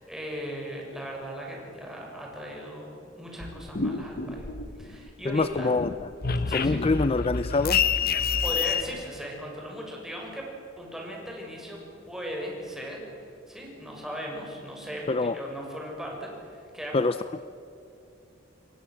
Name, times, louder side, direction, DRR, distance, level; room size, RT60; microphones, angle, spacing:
voice 1, 0.0-4.5 4.8-5.7 6.5-6.8 8.1-10.4 10.8-11.8 12.0-17.1, equal, 5° right, -2 dB, 6.8 m, -38 dB
sound 1, 3.4-5.1 5.4-8.8, left 6 dB, 50° left, 1.1 m, -28 dB
voice 2, 5.3-5.9 6.5-7.8 15.1-15.4 16.9-17.1, left 3 dB, 30° left, 12 dB, 0.5 m, -25 dB
28.0 x 23.0 x 7.8 m, 2.7 s
head